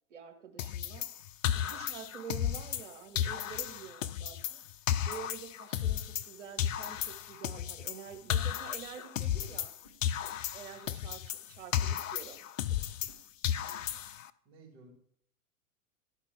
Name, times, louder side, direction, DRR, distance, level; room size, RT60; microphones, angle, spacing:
voice 1, 0.1-1.1 1.5-4.6 5.0-9.7 10.5-12.4, right 8 dB, 60° right, 4 dB, 1.3 m, -47 dB
sound 1, 0.6-2.9 3.2-6.3 6.6-9.8 10.0-13.2 13.4-14.3, left 10 dB, 65° left, 0.5 m, -34 dB
Whoosh swoosh swish, 6.9-7.1 7.3-8.3 8.5-10.4 10.8-11.1 11.4-11.5 11.9-12.4 12.7-13.2, left 4 dB, 40° left, 1.6 m, -58 dB
voice 2, 13.6-14.0 14.5-14.9, right 3 dB, 35° right, -7 dB, 2.5 m, -57 dB
12.0 x 4.4 x 4.5 m, 0.67 s
figure-of-eight pair, 95°, 42 cm